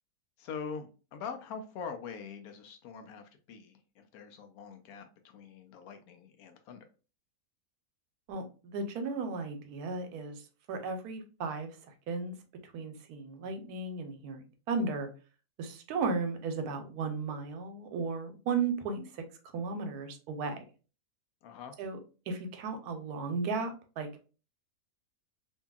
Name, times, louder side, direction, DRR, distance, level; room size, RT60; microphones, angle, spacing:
voice 1, 0.4-6.8 21.4-21.7, left 6 dB, 80° left, 6 dB, 1.0 m, -44 dB
voice 2, 8.3-10.4 10.7-11.7 12.1-12.4 12.7-15.1 15.6-19.2 19.5-20.6 21.8-22.0 22.3-24.1, right 4 dB, 85° right, 7 dB, 1.1 m, -35 dB
2.7 x 2.6 x 2.3 m, 0.35 s
omnidirectional pair, 1.6 m